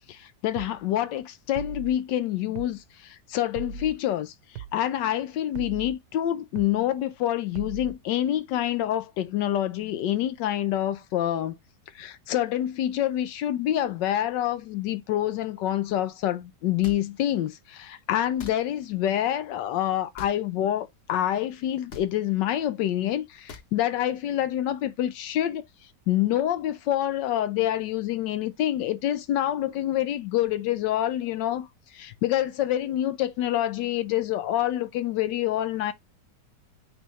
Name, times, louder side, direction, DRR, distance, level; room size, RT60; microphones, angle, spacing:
voice 1, 0.1-11.6 11.9-35.9, left 12 dB, 85° left, 1.3 m, -27 dB
sound 1, 0.6-0.8 1.5-1.9 2.6-2.8 3.5-3.9 4.6-4.8 5.5-5.9 6.6-6.8 7.5-7.9, right 7 dB, 75° right, 1.2 m, -38 dB
sound 2, 16.8-17.0 18.4-18.6 20.1-20.4 21.9-22.1 23.5-23.7, left 4 dB, 45° left, 1.0 m, -41 dB
9.2 x 3.4 x 3.1 m
omnidirectional pair, 1.9 m